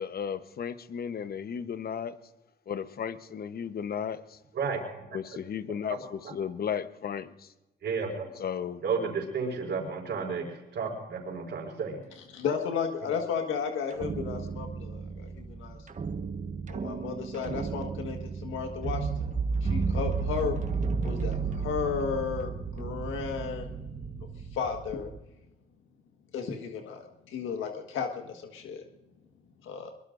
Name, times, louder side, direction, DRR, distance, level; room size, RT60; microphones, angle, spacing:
voice 1, 0.0-2.1 2.7-4.4 5.1-7.3 8.4-8.8, left 7 dB, 50° left, 12 dB, 1.0 m, -34 dB
voice 2, 7.8-8.2 8.8-10.5 10.7-12.0, right 5 dB, 60° right, 1 dB, 4.5 m, -31 dB
voice 3, 12.2-15.8 16.7-19.3 19.6-20.6 21.0-23.7 24.5-25.1 26.3-28.8 29.6-29.9, left 6 dB, 85° left, 4 dB, 1.6 m, -34 dB
sound 1, 13.9-25.2, right 4 dB, 40° right, 1.3 m, -33 dB
23.0 x 22.5 x 2.6 m, 0.97 s
cardioid pair, 90°, 20 cm